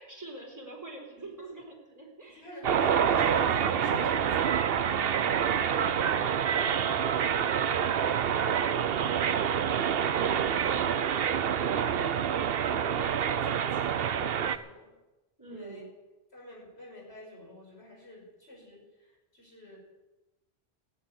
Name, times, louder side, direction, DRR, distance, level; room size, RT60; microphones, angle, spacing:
voice 1, 0.0-2.8 4.8-11.3 15.4-15.9, right 3 dB, 15° right, -1 dB, 3.7 m, -47 dB
voice 2, 2.3-4.6 12.2-14.9 15.5-15.8 16.3-19.8, left 1 dB, 75° left, -3 dB, 5.6 m, -47 dB
sound 1, 2.6-14.6, right 8 dB, 65° right, 0.9 m, -27 dB
15.5 x 8.3 x 9.6 m, 1.1 s
omnidirectional pair, 1.1 m